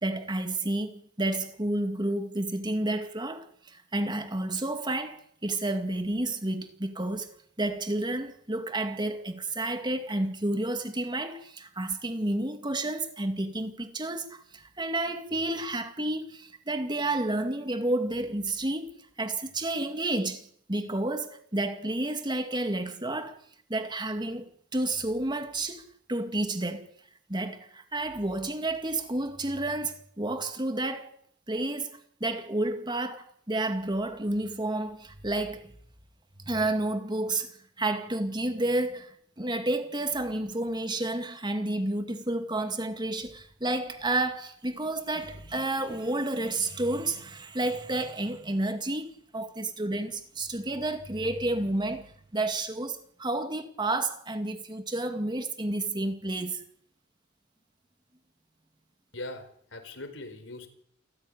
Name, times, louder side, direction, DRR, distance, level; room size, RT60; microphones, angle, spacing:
voice 1, 0.0-7.3 7.6-18.9 19.2-23.4 23.7-25.8 26.1-26.9 27.3-31.1 31.5-35.7 36.4-56.6, right 2 dB, 25° right, 2.2 m, -30 dB
voice 2, 59.1-60.7, left 2 dB, 70° left, 4.4 m, -41 dB
28.0 x 14.0 x 9.8 m
head